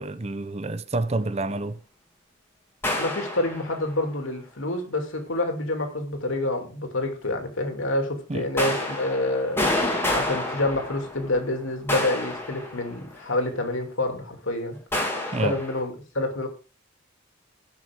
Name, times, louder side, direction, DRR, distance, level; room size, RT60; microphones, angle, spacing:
voice 1, 0.0-1.8 8.3-8.4 15.3-15.6, right 2 dB, 30° right, 0.6 m, -28 dB
sound 1, 2.8-3.9 8.6-11.4 11.9-13.2 14.9-15.8, left 1 dB, 10° left, 2.6 m, -28 dB
voice 2, 3.0-14.8 15.4-16.5, left 2 dB, 75° left, 2.7 m, -28 dB
17.0 x 6.3 x 3.6 m
head